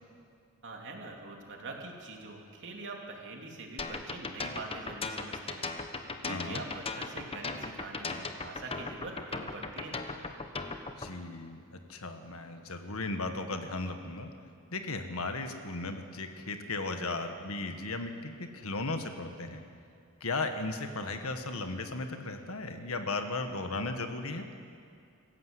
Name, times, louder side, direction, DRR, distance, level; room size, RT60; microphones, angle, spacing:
voice 1, 0.6-5.7 6.2-10.0, right 2 dB, 60° right, 1 dB, 3.0 m, -44 dB
sound 1, 3.8-11.1, left 3 dB, 25° left, 1.1 m, -37 dB
voice 2, 6.3-6.6 11.0-14.3 14.7-19.6 20.2-24.5, left 3 dB, 75° left, 6 dB, 1.8 m, -36 dB
26.5 x 15.0 x 7.8 m, 2.5 s
head